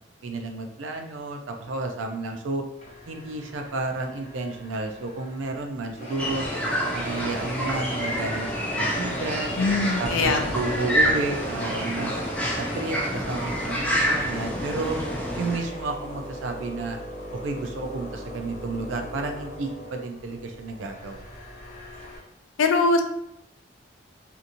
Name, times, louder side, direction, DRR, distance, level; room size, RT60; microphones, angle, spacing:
voice 1, 0.2-2.6 3.1-6.5 6.9-9.6 10.0-12.1 12.5-15.0 15.4-17.0 17.4-21.2, right 2 dB, 80° right, 4 dB, 0.5 m, -31 dB
sound 1, 2.8-5.6 6.0-22.2, equal, 35° left, 0.7 m, -37 dB
sound 2, 6.2-15.6, equal, 5° left, 0.3 m, -28 dB
voice 2, 9.6-10.5 22.6-23.0, left 3 dB, 85° left, 5 dB, 0.4 m, -22 dB
2.8 x 2.6 x 2.5 m, 0.79 s
head